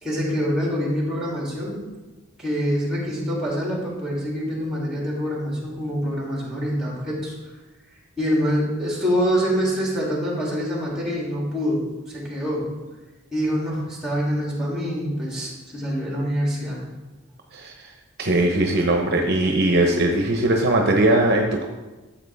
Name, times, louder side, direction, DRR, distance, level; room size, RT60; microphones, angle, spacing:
voice 1, 0.0-1.8 2.4-7.3 8.2-11.8 12.1-12.7 13.3-16.8, equal, 5° right, -4 dB, 2.9 m, -25 dB
voice 2, 17.5-17.9 18.2-21.6, right 1 dB, 50° right, 2 dB, 0.9 m, -20 dB
13.0 x 7.4 x 3.6 m, 1.2 s
head